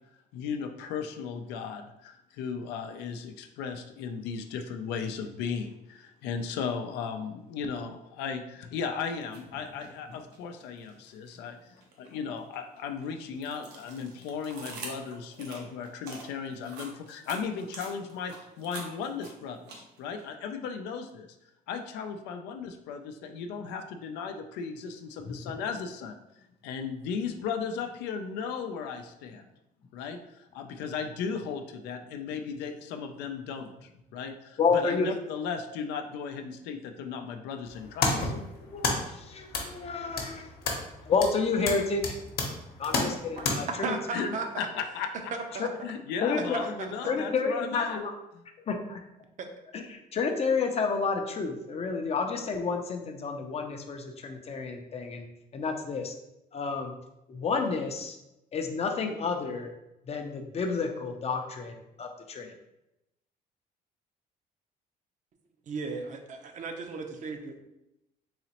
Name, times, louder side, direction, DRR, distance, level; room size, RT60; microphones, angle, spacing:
voice 1, 0.3-11.6 12.0-21.3 21.7-26.2 26.6-29.4 29.9-38.3 44.1-44.3 44.6-45.1 45.8-48.0 48.3-48.4, left 6 dB, 90° left, 6 dB, 0.4 m, -36 dB
sound 1, 9.2-9.4 9.8-11.3 11.8-20.2, right 3 dB, 80° right, 0.8 m, -45 dB
voice 2, 34.6-35.1 38.6-40.5 41.1-42.2 42.8-44.0 44.2-44.4 45.6-45.7 46.2-46.6 47.1-48.1 48.7-49.0 49.7-55.3 55.5-56.1 56.5-56.9 57.3-58.2 58.5-59.7 60.1-62.5, left 4 dB, 35° left, 4 dB, 0.5 m, -30 dB
sound 2, 37.7-43.5, left 3 dB, 65° left, 0.9 m, -32 dB
voice 3, 43.8-44.7 45.5-45.7 46.5-46.9 49.4-49.5 65.7-67.4, right 4 dB, 45° right, 5 dB, 0.6 m, -35 dB
3.9 x 2.9 x 2.9 m, 0.88 s
cardioid pair, 110°, 17 cm